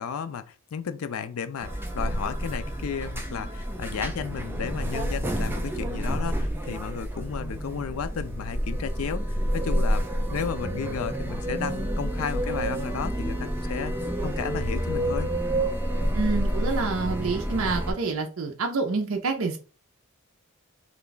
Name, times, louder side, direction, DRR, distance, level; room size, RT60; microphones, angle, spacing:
voice 1, 0.0-13.9 14.2-15.3, left 7 dB, 75° left, 0.4 m, -33 dB
sound 1, 1.6-17.9, right 1 dB, 10° right, 0.4 m, -29 dB
voice 2, 16.1-19.6, right 4 dB, 70° right, 0.5 m, -27 dB
3.3 x 2.3 x 3.8 m
head